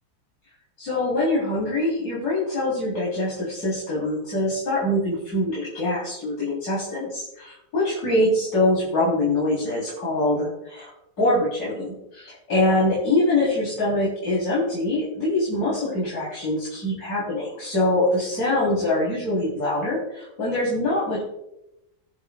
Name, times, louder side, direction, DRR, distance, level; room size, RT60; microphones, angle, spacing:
voice 1, 0.8-10.9 11.2-21.2, left 1 dB, 65° left, -8 dB, 4.2 m, -24 dB
21.5 x 7.4 x 2.4 m, 0.88 s
omnidirectional pair, 1.8 m